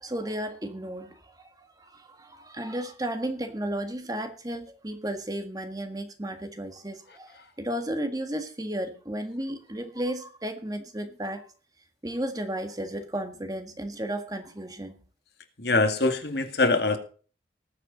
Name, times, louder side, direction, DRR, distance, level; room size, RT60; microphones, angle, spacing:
voice 1, 0.0-11.4 12.0-15.0, right 1 dB, 20° right, 6 dB, 1.7 m, -34 dB
voice 2, 15.6-17.0, left 3 dB, 60° left, 7 dB, 2.1 m, -23 dB
19.5 x 8.1 x 4.0 m, 0.38 s
head